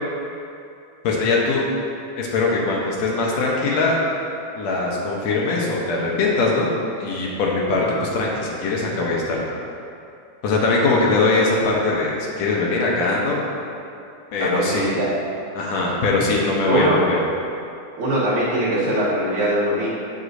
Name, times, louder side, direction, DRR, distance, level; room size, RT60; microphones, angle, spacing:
voice 1, 1.0-1.6 2.2-4.0 4.6-6.7 7.0-9.4 10.4-13.4 14.3-15.0 15.5-17.2, left 3 dB, 70° left, -3 dB, 1.9 m, -21 dB
voice 2, 14.4-15.1 16.7-17.0 18.0-19.9, right 1 dB, 70° right, -9 dB, 3.0 m, -21 dB
8.0 x 6.7 x 2.6 m, 2.6 s
omnidirectional pair, 3.5 m